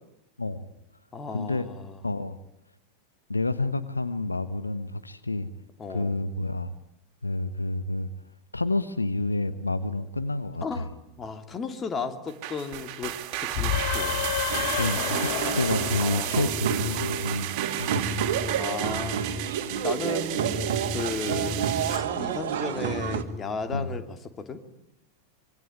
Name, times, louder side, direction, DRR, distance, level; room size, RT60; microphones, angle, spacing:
voice 1, 0.4-0.7 1.3-1.7 2.0-2.4 3.3-5.5 5.9-6.7 7.2-8.1 8.5-10.9 14.8-15.3 15.5-17.5 17.8-18.3 23.7-23.9, left 2 dB, 80° left, 13 dB, 1.2 m, -29 dB
voice 2, 1.1-2.0 5.8-6.1 10.6-10.9 11.2-14.3 16.0-16.5 18.5-21.6 21.9-24.6, left 4 dB, 20° left, 9 dB, 2.8 m, -35 dB
sound 1, 12.3-22.0, right 14 dB, 40° right, 2.9 m, -33 dB
sound 2, 13.5-17.1, left 11 dB, 50° left, 1.2 m, -30 dB
sound 3, 14.5-23.2, right 7 dB, 55° right, 2.2 m, -30 dB
26.0 x 23.5 x 9.7 m, 0.80 s
figure-of-eight pair, 90°, 0 cm